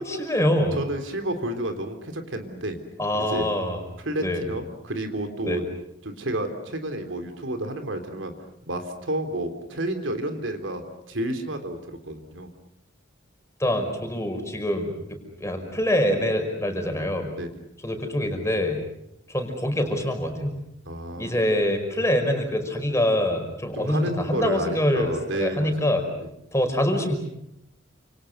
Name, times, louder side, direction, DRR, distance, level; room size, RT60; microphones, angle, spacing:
voice 1, 0.0-0.8 3.0-3.8 4.2-4.4 5.5-5.6 13.6-17.3 17.8-18.8 19.3-20.5 21.2-26.0 26.5-27.2, left 1 dB, 15° left, 5 dB, 5.3 m, -25 dB
voice 2, 0.7-2.8 3.3-3.5 4.0-5.6 6.0-8.3 8.7-12.5 17.3-17.6 20.8-21.6 23.7-25.9 26.2-26.3, right 1 dB, 70° right, 6 dB, 3.5 m, -31 dB
29.5 x 27.5 x 6.7 m, 0.80 s
head